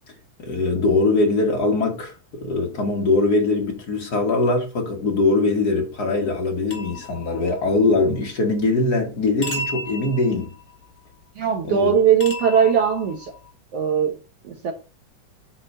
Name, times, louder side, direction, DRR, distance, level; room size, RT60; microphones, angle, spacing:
voice 1, 0.4-10.5 11.6-12.0, left 3 dB, 45° left, 1.4 m, -22 dB
sound 1, 6.7-7.9 9.4-10.9 12.2-13.5, left 1 dB, 20° left, 1.9 m, -34 dB
voice 2, 11.3-13.3 13.7-14.2 14.4-14.7, right 7 dB, 65° right, 1.7 m, -19 dB
8.6 x 3.9 x 5.5 m
omnidirectional pair, 3.9 m